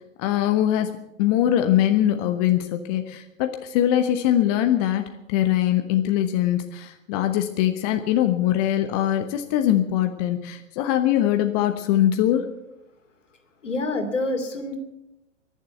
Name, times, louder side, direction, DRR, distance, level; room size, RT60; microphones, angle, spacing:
voice 1, 0.2-0.9 1.2-5.0 5.3-12.5, left 12 dB, 30° left, 7 dB, 1.1 m, -22 dB
voice 2, 13.6-14.8, left 2 dB, 75° left, 5 dB, 2.8 m, -27 dB
23.0 x 7.7 x 8.0 m, 0.89 s
figure-of-eight pair, 105°, 38 cm